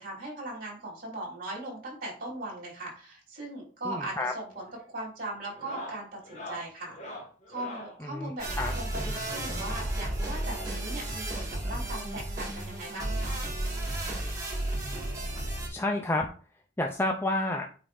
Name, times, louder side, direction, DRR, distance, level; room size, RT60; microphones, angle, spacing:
voice 1, 0.0-7.2 7.5-13.4, right 1 dB, 45° right, -4 dB, 3.8 m, -39 dB
voice 2, 3.8-4.3 8.0-8.7 15.7-16.3 16.8-17.7, left 2 dB, 10° left, 2 dB, 0.5 m, -30 dB
sound 1, 3.9-4.3 4.5-4.9 5.4-8.0 9.3-10.7 11.7-11.8 12.0-12.2 12.6-12.7 14.0-14.1 15.4-15.5, left 1 dB, 40° left, 1.8 m, -44 dB
sound 2, 8.4-15.7, right 1 dB, 20° right, 2.1 m, -33 dB
8.9 x 4.8 x 2.6 m, 0.40 s
head